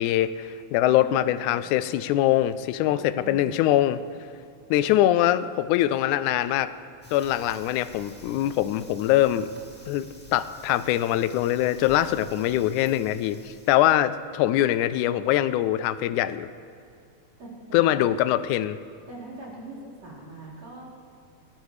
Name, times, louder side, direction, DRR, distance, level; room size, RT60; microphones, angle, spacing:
voice 1, 0.0-4.0 4.7-6.7 7.1-9.5 9.9-10.1 10.3-16.5 17.7-18.8, left 13 dB, 80° left, 13 dB, 1.9 m, -23 dB
voice 2, 0.8-1.7 2.9-3.5 17.4-17.9 19.1-20.8, right 2 dB, 55° right, -6 dB, 5.3 m, -42 dB
Fire, 7.0-13.7, equal, 5° left, 1.0 m, -49 dB
27.5 x 14.5 x 3.2 m, 2.4 s
omnidirectional pair, 3.6 m